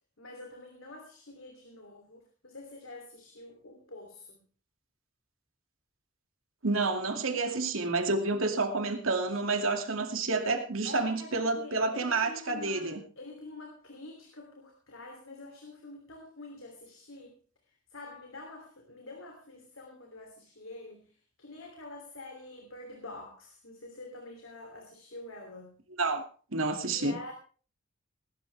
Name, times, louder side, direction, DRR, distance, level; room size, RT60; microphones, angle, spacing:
voice 1, 0.2-4.4 7.4-7.7 10.8-17.4 17.9-21.1 21.4-25.8 26.9-27.3, left 2 dB, 80° left, 2 dB, 3.1 m, -47 dB
voice 2, 6.6-13.0 26.0-26.2 26.5-27.2, right 3 dB, 80° right, 5 dB, 2.4 m, -29 dB
19.5 x 12.0 x 3.4 m, 0.39 s
head